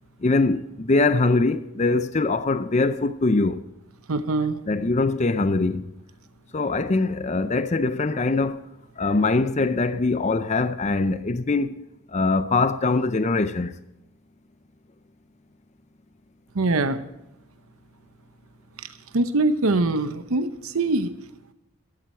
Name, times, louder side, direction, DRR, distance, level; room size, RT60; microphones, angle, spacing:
voice 1, 0.2-3.6 4.7-5.8 6.5-8.6 9.0-11.8 12.1-13.7, left 3 dB, 30° left, 0.5 m, -22 dB
voice 2, 4.1-4.6 16.5-17.0 19.1-21.1, right 2 dB, 75° right, 0.8 m, -23 dB
14.5 x 12.5 x 4.4 m
head